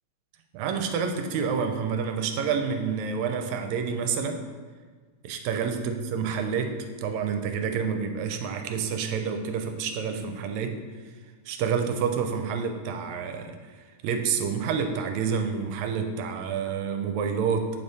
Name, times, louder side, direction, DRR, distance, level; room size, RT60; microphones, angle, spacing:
voice 1, 0.5-4.4 5.2-10.8 11.5-13.6 14.0-17.7, right 6 dB, 80° right, 5 dB, 1.9 m, -28 dB
8.5 x 3.4 x 4.0 m, 1.5 s
omnidirectional pair, 3.3 m